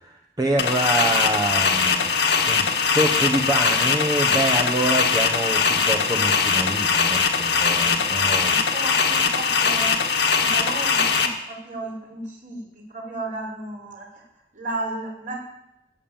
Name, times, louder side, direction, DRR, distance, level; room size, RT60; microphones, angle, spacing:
voice 1, 0.0-2.1 2.5-2.6 2.9-8.5, right 1 dB, 20° right, 2 dB, 1.2 m, -26 dB
sound 1, 0.6-11.3, left 5 dB, 70° left, 1.7 m, -21 dB
voice 2, 7.8-9.9 10.4-12.6 12.9-14.1 14.5-15.4, right 2 dB, 50° right, -1 dB, 5.3 m, -34 dB
19.5 x 7.3 x 9.0 m, 0.87 s
head